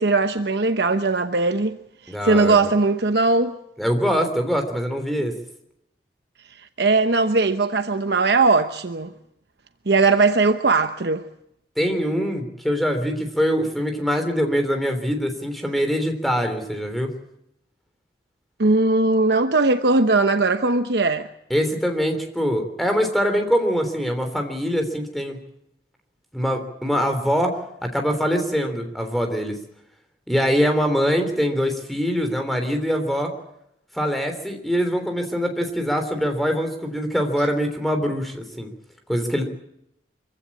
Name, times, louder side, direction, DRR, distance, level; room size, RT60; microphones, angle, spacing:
voice 1, 0.0-1.8 2.1-3.6 6.6-9.1 9.9-11.2 18.6-21.3, right 3 dB, 60° right, 0.9 m, -19 dB
voice 2, 2.1-2.7 3.8-5.3 11.8-17.1 21.5-25.4 26.3-29.6 30.3-33.3 33.9-38.7 39.1-39.4, equal, ahead, 3.3 m, -23 dB
24.5 x 16.0 x 8.6 m
head